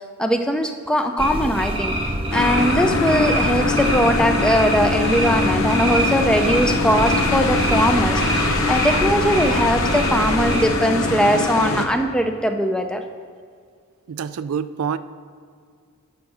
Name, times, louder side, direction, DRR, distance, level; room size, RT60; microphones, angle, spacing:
voice 1, 0.2-2.0 2.3-13.0, equal, 5° left, 6 dB, 0.5 m, -20 dB
sound 1, 1.2-10.6, right 1 dB, 25° right, 0.8 m, -25 dB
sound 2, 2.3-11.9, left 3 dB, 70° left, 0.9 m, -23 dB
voice 2, 14.1-15.0, right 7 dB, 75° right, 13 dB, 0.4 m, -26 dB
12.5 x 4.7 x 6.1 m, 2.1 s
head